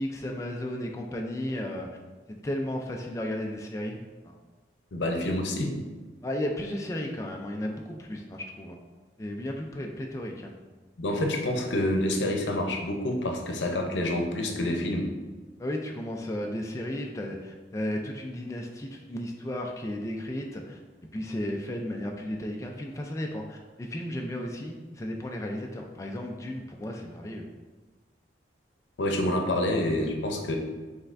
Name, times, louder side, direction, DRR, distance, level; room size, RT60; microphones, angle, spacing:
voice 1, 0.0-1.9 2.4-4.4 6.2-8.8 9.2-10.5 15.6-20.8 21.1-27.4, left 1 dB, 15° left, 1 dB, 0.3 m, -34 dB
voice 2, 4.9-5.7 11.0-15.1 29.0-30.6, left 1 dB, 90° left, 3 dB, 0.6 m, -27 dB
5.3 x 3.3 x 2.5 m, 1.3 s
head